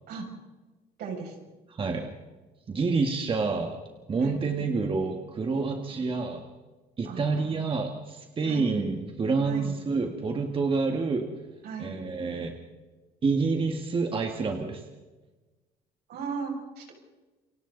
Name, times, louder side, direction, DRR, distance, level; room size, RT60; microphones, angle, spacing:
voice 1, 1.0-1.4 4.2-4.4 7.0-7.4 8.5-8.7 9.4-9.7 11.6-12.0 16.1-16.9, right 5 dB, 70° right, 1 dB, 6.8 m, -36 dB
voice 2, 1.7-2.1 2.7-3.8 4.1-6.4 7.0-11.3 11.8-12.5 13.2-14.8, right 4 dB, 30° right, 3 dB, 2.0 m, -28 dB
29.0 x 24.5 x 4.1 m, 1.2 s
cardioid pair, 110°, 17 cm